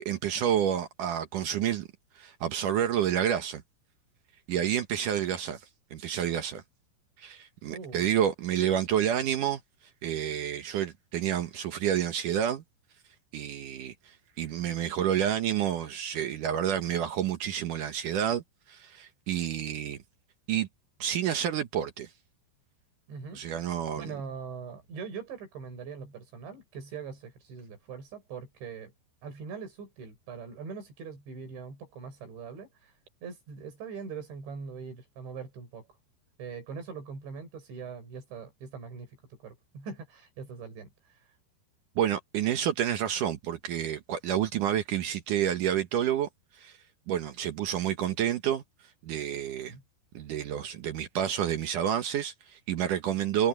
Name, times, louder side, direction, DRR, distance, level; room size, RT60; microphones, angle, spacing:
voice 1, 0.0-1.9 2.2-3.6 4.5-5.6 5.9-6.6 7.2-9.6 10.0-12.6 13.3-13.9 14.4-18.4 18.7-20.0 20.5-20.7 21.0-22.1 23.3-24.1 42.0-46.3 46.6-46.7 47.1-48.6 49.0-49.7 50.1-53.5, right 10 dB, 70° right, 2.1 m, -29 dB
voice 2, 7.7-8.1 23.1-23.4 24.0-28.9 29.2-32.9 33.2-35.9 36.4-40.9 49.7-49.8, right 5 dB, 85° right, 8.7 m, -42 dB
omnidirectional pair, 5.1 m